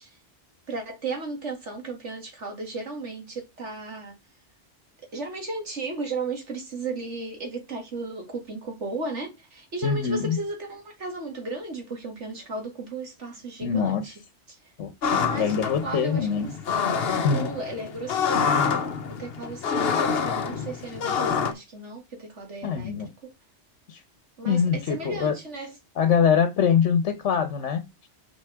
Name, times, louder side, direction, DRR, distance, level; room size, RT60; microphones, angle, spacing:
voice 1, 0.7-4.1 5.1-14.2 14.5-14.6 15.2-16.6 17.1-18.8 19.1-23.0 23.2-23.3 24.4-25.7, right 3 dB, 75° right, 2.5 m, -35 dB
voice 2, 9.8-10.4 13.6-14.0 14.8-14.9 15.3-16.5 17.2-17.5 22.6-23.1 23.9-24.0 24.4-25.4 26.0-27.8, left 7 dB, 75° left, 1.2 m, -23 dB
sound 1, 15.0-21.5, left 6 dB, 60° left, 1.0 m, -26 dB
6.2 x 6.0 x 3.4 m
omnidirectional pair, 1.2 m